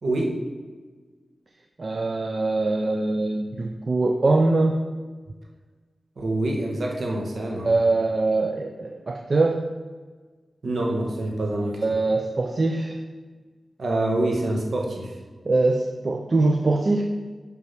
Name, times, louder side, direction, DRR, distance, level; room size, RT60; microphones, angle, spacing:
voice 1, 0.0-0.3 6.2-7.7 10.6-11.8 13.8-15.1, right 1 dB, 70° right, -1 dB, 1.7 m, -26 dB
voice 2, 1.8-4.8 7.6-9.6 11.8-13.0 15.4-17.0, right 2 dB, 55° right, 3 dB, 0.7 m, -22 dB
5.9 x 5.7 x 6.0 m, 1.4 s
cardioid pair, 40°, 0 cm